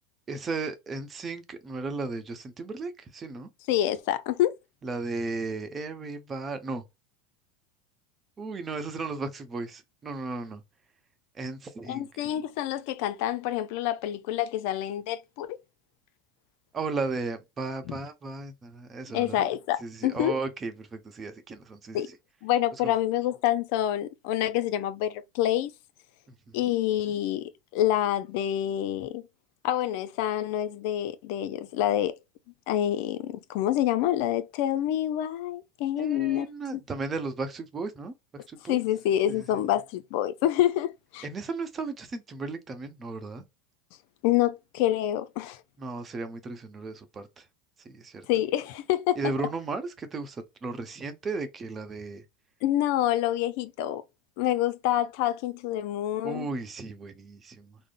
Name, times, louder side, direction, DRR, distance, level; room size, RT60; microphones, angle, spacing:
voice 1, 0.3-3.5 4.8-6.8 8.4-10.6 11.3-12.3 16.7-19.5 19.8-22.2 22.8-22.9 26.3-26.7 36.0-38.8 39.3-39.5 41.2-43.4 45.8-47.5 47.8-48.3 49.2-52.2 56.2-57.8, right 3 dB, 25° right, 0.7 m, -35 dB
voice 2, 3.7-4.6 11.9-15.6 17.9-18.0 19.1-20.4 21.9-22.1 22.4-25.7 26.5-29.2 29.6-32.2 32.7-36.5 38.7-41.2 44.2-45.6 48.3-49.2 52.6-54.0 54.4-56.5, left 12 dB, 65° left, 0.4 m, -27 dB
3.6 x 2.0 x 2.4 m
supercardioid pair, 105°, 0 cm